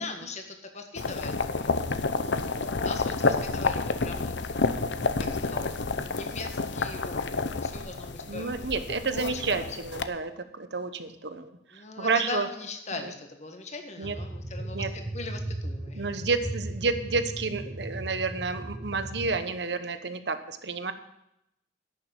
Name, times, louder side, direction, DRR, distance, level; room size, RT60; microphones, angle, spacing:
voice 1, 0.0-1.8 2.2-4.3 5.2-8.7 9.1-9.6 11.7-16.0, left 3 dB, 40° left, 5 dB, 1.6 m, -40 dB
sound 1, 1.0-10.0, left 3 dB, 85° left, 0.8 m, -29 dB
voice 2, 8.3-12.5 13.0-13.1 14.0-14.1 14.7-14.9 15.9-20.9, right 4 dB, 70° right, 10 dB, 1.0 m, -30 dB
sound 2, 14.0-19.4, right 1 dB, 20° right, 0.8 m, -37 dB
11.5 x 6.8 x 8.6 m, 0.83 s
head